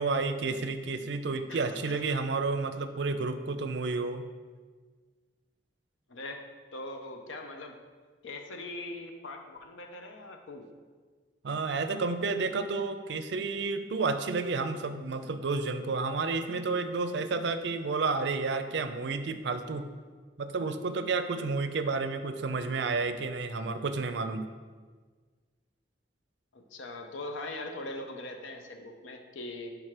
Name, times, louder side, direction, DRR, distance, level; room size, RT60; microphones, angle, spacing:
voice 1, 0.0-4.2 11.4-19.9 20.4-24.5, right 4 dB, 65° right, 9 dB, 0.4 m, -31 dB
voice 2, 1.5-2.0 6.1-6.4 6.7-7.8 8.2-10.7 26.5-29.7, left 2 dB, 85° left, 4 dB, 0.7 m, -41 dB
5.8 x 4.7 x 4.9 m, 1.5 s
head